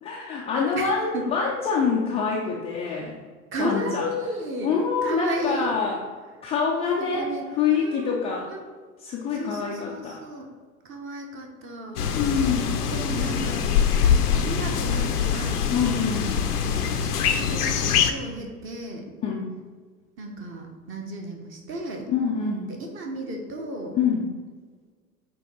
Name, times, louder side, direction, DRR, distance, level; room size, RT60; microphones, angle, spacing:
voice 1, 0.0-3.2 3.6-4.1 4.6-6.0 6.4-8.5 9.0-10.2 12.2-12.8 15.7-16.4 19.2-19.5 22.1-22.7 23.9-24.3, left 5 dB, 15° left, -3 dB, 0.4 m, -26 dB
voice 2, 0.8-1.3 3.5-4.7 5.0-5.7 7.1-8.2 8.5-8.6 9.3-10.5 10.9-12.0 12.9-13.7 14.5-15.6 16.5-16.7 17.4-19.1 20.2-22.1 22.8-24.0, right 1 dB, 25° right, 2 dB, 1.1 m, -33 dB
sound 1, 12.0-18.1, left 7 dB, 75° left, 0.7 m, -23 dB
8.1 x 2.9 x 4.0 m, 1.5 s
figure-of-eight pair, 90°, 47 cm